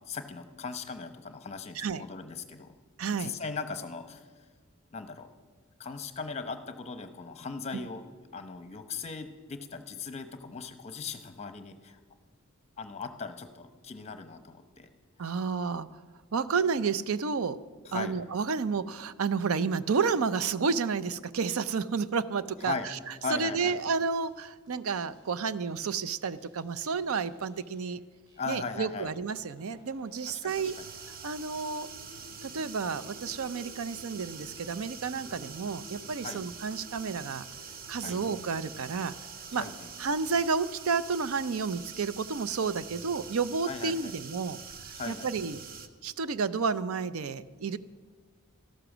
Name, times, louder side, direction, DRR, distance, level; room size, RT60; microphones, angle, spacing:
voice 1, 0.0-2.7 3.2-4.3 4.9-5.3 5.8-8.1 8.3-12.0 12.8-14.9 17.9-18.2 22.6-22.9 23.2-23.8 28.4-29.2 30.3-30.9 36.2-36.4 38.0-38.2 39.5-39.9 43.7-44.1 44.9-45.3, left 4 dB, 30° left, 9 dB, 0.8 m, -38 dB
voice 2, 1.7-2.1 3.0-3.3 7.7-7.8 15.2-15.9 16.3-17.6 17.9-23.0 23.3-28.0 28.5-30.8 31.2-31.9 32.4-37.4 37.9-39.1 39.5-39.6 40.0-45.6 46.0-47.8, right 5 dB, 75° right, 16 dB, 0.5 m, -31 dB
sound 1, 22.8-23.3 23.6-25.6 25.9-28.0 28.3-30.3 30.6-32.6 32.9-34.9 35.2-37.2 37.5-39.5 39.8-40.9, left 1 dB, 60° right, 4.5 m, -56 dB
sound 2, 30.5-45.9, right 6 dB, 40° right, 0.7 m, -45 dB
13.5 x 12.0 x 6.1 m, 1.5 s
head